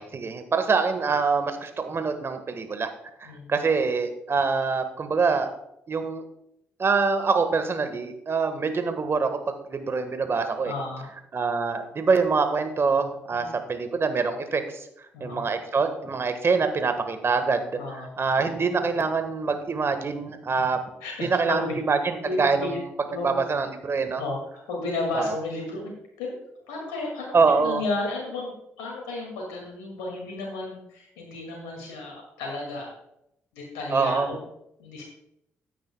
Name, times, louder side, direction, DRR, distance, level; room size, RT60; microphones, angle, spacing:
voice 1, 0.0-2.9 3.2-5.5 5.9-6.2 6.8-9.4 9.6-10.7 11.3-14.9 15.2-17.7 17.9-20.8 21.2-24.2 25.1-25.3 27.3-27.8 33.9-34.4, right 4 dB, 40° right, 8 dB, 1.5 m, -25 dB
voice 2, 3.2-3.6 10.6-11.1 13.3-13.4 15.1-15.4 17.8-18.1 21.0-21.8 22.2-22.7 23.1-23.4 24.2-24.4 24.7-25.9 26.2-26.4 26.7-32.9 33.5-34.4 34.8-35.0, left 2 dB, 75° left, -1 dB, 2.3 m, -33 dB
15.0 x 9.3 x 2.3 m, 0.80 s
hypercardioid pair, 40°, 6 cm